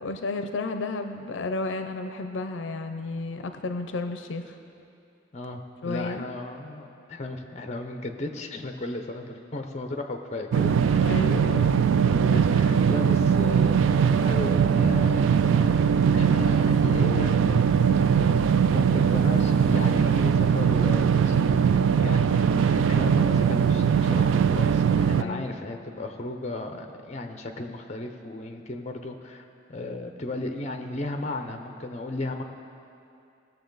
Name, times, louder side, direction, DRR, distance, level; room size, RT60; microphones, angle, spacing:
voice 1, 0.0-4.6 5.8-6.2 11.0-11.5 25.1-25.6, left 3 dB, 75° left, 7 dB, 0.5 m, -32 dB
voice 2, 5.3-18.0 18.6-32.4, left 2 dB, 35° left, 5 dB, 0.7 m, -35 dB
sound 1, 10.5-25.2, right 7 dB, 80° right, 0.3 m, -21 dB
18.0 x 6.9 x 3.9 m, 2.7 s
head